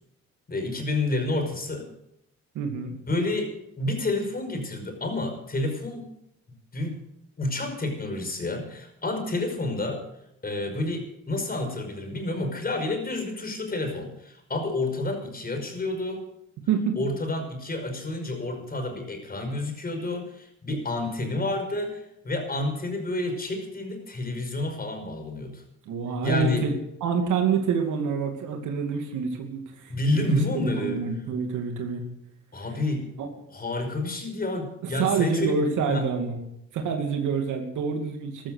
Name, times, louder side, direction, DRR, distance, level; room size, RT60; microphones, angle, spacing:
voice 1, 0.5-1.9 3.1-6.1 6.5-7.0 7.4-10.0 10.4-16.2 17.0-25.6 26.2-26.7 29.9-31.0 32.5-33.1 33.5-35.6 35.9-36.1, left 2 dB, 30° left, 5 dB, 5.3 m, -29 dB
voice 2, 2.5-3.0 16.7-17.0 25.9-26.7 27.0-32.0 33.2-33.3 34.8-36.4 36.7-38.5, right 6 dB, 80° right, 3 dB, 2.6 m, -27 dB
14.5 x 13.0 x 6.6 m, 0.79 s
cardioid pair, 90°, 30 cm